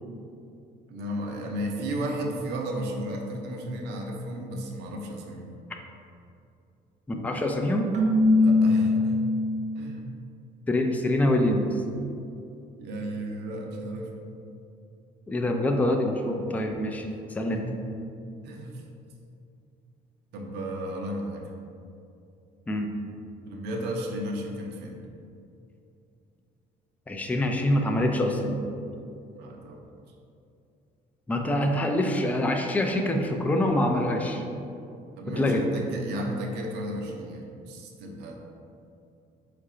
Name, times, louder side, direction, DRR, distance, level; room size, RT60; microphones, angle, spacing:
voice 1, 0.9-5.5 8.4-9.2 9.8-10.0 12.8-14.1 17.5-17.6 18.4-18.8 20.3-21.5 23.5-25.0 29.3-29.8 32.9-33.0 35.2-38.4, right 1 dB, 80° right, 1 dB, 0.7 m, -34 dB
voice 2, 7.1-7.9 10.7-11.7 15.3-17.1 17.3-17.6 22.7-22.9 27.1-28.6 31.3-34.4 35.4-35.6, left 1 dB, 10° left, 3 dB, 0.4 m, -25 dB
Keyboard (musical), 7.9-9.9, left 2 dB, 45° right, 0.7 m, -21 dB
4.6 x 2.5 x 4.3 m, 2.6 s
cardioid pair, 110°, 17 cm